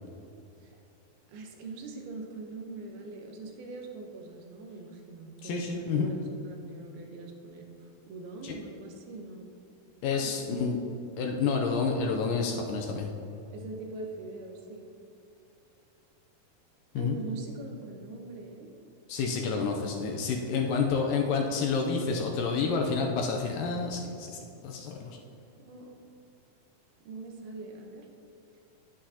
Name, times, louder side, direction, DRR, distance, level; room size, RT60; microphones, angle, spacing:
voice 1, 1.3-9.5 10.1-10.8 13.5-14.9 16.9-18.7 25.6-26.0 27.0-28.1, right 3 dB, 85° right, 2 dB, 2.9 m, -42 dB
voice 2, 5.4-6.1 8.4-8.6 10.0-10.8 11.2-13.1 16.9-17.2 19.1-25.2, left 5 dB, 80° left, 1 dB, 2.1 m, -29 dB
10.5 x 10.0 x 2.8 m, 2.8 s
omnidirectional pair, 4.3 m